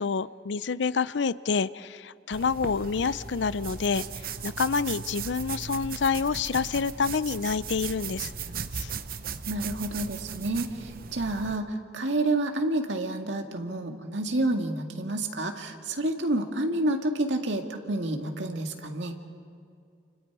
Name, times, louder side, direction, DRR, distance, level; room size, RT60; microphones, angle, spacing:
voice 1, 0.0-4.0 4.4-8.3 8.7-8.9, left 5 dB, 75° left, 17 dB, 0.5 m, -28 dB
sound 1, 2.3-11.6, right 6 dB, 55° right, 0.8 m, -37 dB
voice 2, 9.5-19.2, right 1 dB, 85° right, 3 dB, 2.1 m, -29 dB
29.5 x 29.0 x 4.9 m, 2.3 s
head